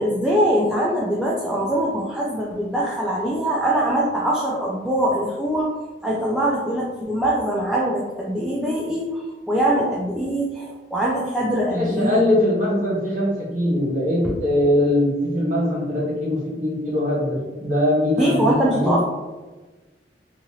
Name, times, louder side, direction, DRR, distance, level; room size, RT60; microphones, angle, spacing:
voice 1, 0.0-5.7 6.0-12.2 14.2-14.3 18.2-19.0, right 1 dB, 5° right, -6 dB, 0.3 m, -22 dB
voice 2, 11.7-19.0, left 1 dB, 50° right, -6 dB, 1.3 m, -21 dB
2.8 x 2.7 x 2.7 m, 1.2 s
head